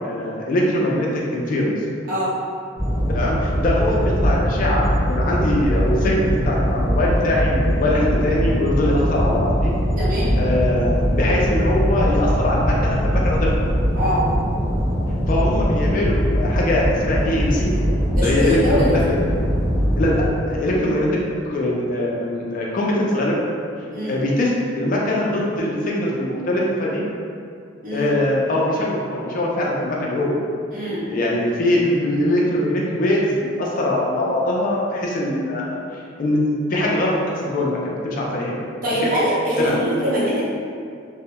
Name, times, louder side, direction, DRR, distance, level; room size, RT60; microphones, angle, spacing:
voice 1, 0.0-1.7 3.1-9.7 10.4-13.6 15.3-17.7 18.1-19.2 19.9-21.1 21.4-23.4 24.1-27.1 27.9-30.3 31.1-35.8 36.2-37.2 37.4-38.5 39.0-39.1 39.6-39.8, left 1 dB, 45° left, -3 dB, 0.3 m, -22 dB
sound 1, 2.8-20.3, equal, 10° right, 0.9 m, -21 dB
voice 2, 10.0-10.3 13.9-14.2 18.2-19.1 23.9-24.2 27.8-28.1 30.7-31.0 38.8-40.4, equal, 45° right, -8 dB, 0.7 m, -23 dB
2.2 x 2.0 x 2.7 m, 2.3 s
head